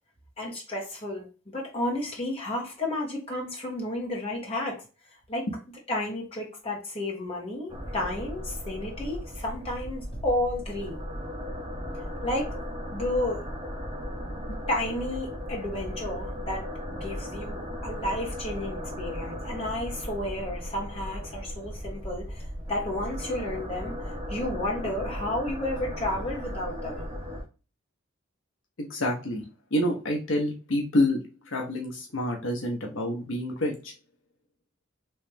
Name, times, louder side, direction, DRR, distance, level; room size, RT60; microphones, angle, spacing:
voice 1, 0.4-4.8 5.3-5.5 5.9-11.0 12.2-12.5 12.9-13.4 14.7-23.9 24.3-27.1, left 1 dB, 25° left, -1 dB, 1.3 m, -32 dB
sound 1, 7.7-27.4, equal, 20° right, 0.9 m, -36 dB
voice 2, 28.8-33.9, left 1 dB, 65° left, 1 dB, 0.7 m, -28 dB
3.1 x 3.1 x 3.3 m, 0.32 s
head